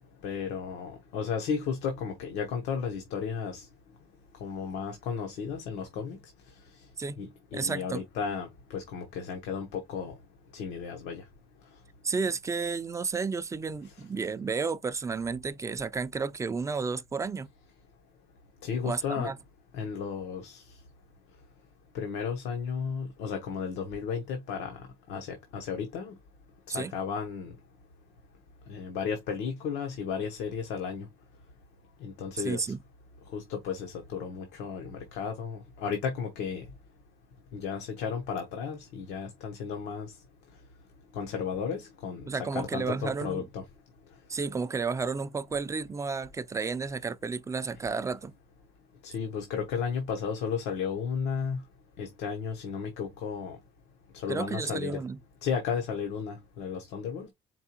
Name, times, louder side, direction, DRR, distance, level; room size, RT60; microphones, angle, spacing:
voice 1, 0.2-3.7 4.4-6.2 7.2-10.1 10.5-11.2 18.6-19.3 19.7-20.6 21.9-24.8 25.1-26.1 26.7-27.5 28.7-31.1 32.0-32.7 33.3-36.6 37.5-40.1 41.1-43.6 49.0-51.6 52.0-53.6 54.1-55.0 55.4-57.3, left 6 dB, 90° left, 1.0 m, -34 dB
voice 2, 7.5-8.0 12.0-17.5 18.8-19.4 26.7-26.9 32.4-32.8 42.3-43.5 44.3-48.3 54.3-55.2, right 4 dB, 20° right, 0.4 m, -32 dB
4.5 x 3.4 x 2.9 m
cardioid pair, 110°, 17 cm